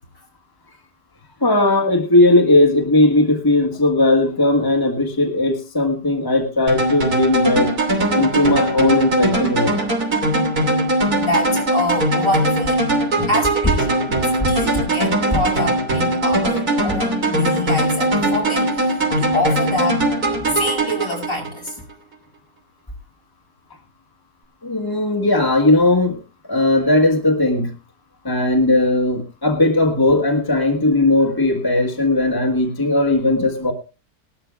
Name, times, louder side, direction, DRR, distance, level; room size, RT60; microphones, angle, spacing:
voice 1, 1.4-7.7 8.1-9.8 13.2-13.3 14.1-14.5 19.1-19.2 24.6-26.2 26.5-27.7 28.2-33.7, left 2 dB, 15° left, 1 dB, 1.5 m, -17 dB
sound 1, 6.7-21.7, right 1 dB, 60° right, 3.5 m, -20 dB
voice 2, 11.2-12.8 13.3-20.1 20.5-21.8, left 1 dB, 50° left, 0 dB, 7.0 m, -26 dB
20.0 x 13.0 x 2.3 m, 0.31 s
omnidirectional pair, 1.8 m